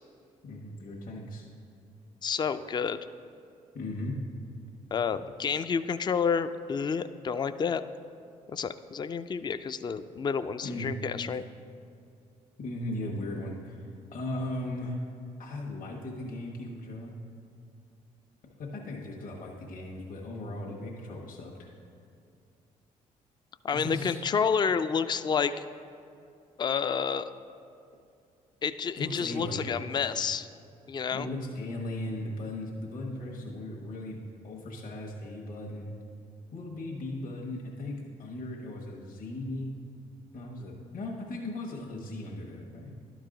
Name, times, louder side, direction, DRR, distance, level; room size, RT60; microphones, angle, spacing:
voice 1, 0.4-1.5 3.7-4.2 10.6-10.9 12.6-13.8 14.1-15.0 15.4-17.1 18.6-21.7 23.7-24.2 29.0-29.8 31.1-35.9 36.5-39.7 40.3-43.0, left 1 dB, 60° left, -2 dB, 1.3 m, -37 dB
voice 2, 2.2-3.0 4.9-7.8 8.5-11.4 23.6-25.6 26.6-27.3 28.6-30.5 30.9-31.3, left 6 dB, 30° left, 12 dB, 0.3 m, -29 dB
11.5 x 4.7 x 3.8 m, 2.5 s
supercardioid pair, 55°, 16 cm